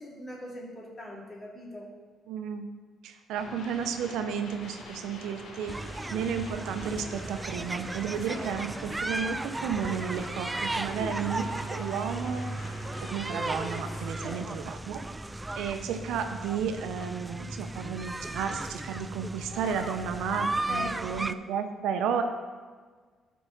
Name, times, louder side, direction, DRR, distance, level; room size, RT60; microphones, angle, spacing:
voice 1, 0.0-1.9 8.0-8.7 11.0-11.3 14.2-14.4 20.7-21.2, left 1 dB, 35° left, -3 dB, 2.5 m, -41 dB
voice 2, 2.3-2.7 3.0-5.7 6.1-12.5 13.0-15.0 15.5-22.2, right 7 dB, 90° right, 7 dB, 0.7 m, -33 dB
sound 1, 3.4-14.0, left 2 dB, 75° left, 1.4 m, -46 dB
sound 2, 5.7-21.3, right 2 dB, 15° right, 0.3 m, -35 dB
13.0 x 4.7 x 3.9 m, 1.5 s
cardioid pair, 90°, 0 cm